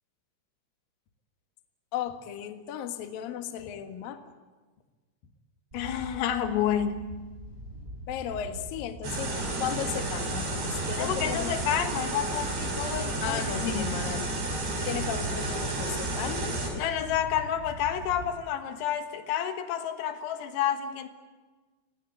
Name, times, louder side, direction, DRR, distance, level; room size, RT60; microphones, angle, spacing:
voice 1, 1.9-4.2 8.1-11.5 13.2-14.2 14.9-16.6, left 10 dB, 60° left, 7 dB, 2.7 m, -35 dB
voice 2, 5.7-7.2 11.0-14.0 14.8-15.0 16.8-21.1, left 9 dB, 85° left, 7 dB, 4.3 m, -30 dB
sound 1, 5.7-18.3, right 1 dB, 10° right, 4.6 m, -42 dB
sound 2, 9.0-16.7, right 2 dB, 55° right, 7.6 m, -31 dB
26.0 x 19.0 x 9.3 m, 1.3 s
omnidirectional pair, 5.9 m